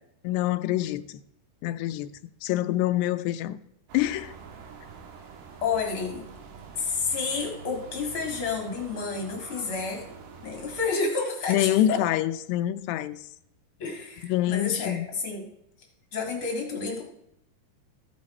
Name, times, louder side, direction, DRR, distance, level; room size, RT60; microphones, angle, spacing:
voice 1, 0.2-1.2 1.6-2.1 2.4-3.6 3.9-4.3 11.5-13.2 14.2-15.1, left 13 dB, 90° left, 2.7 m, -26 dB
sound 1, 3.9-10.9, right 5 dB, 75° right, 3.1 m, -45 dB
voice 2, 5.6-6.3 6.7-10.0 10.4-12.0 13.8-15.4 16.1-17.0, left 4 dB, 45° left, 2.0 m, -30 dB
14.0 x 9.2 x 4.3 m
omnidirectional pair, 4.7 m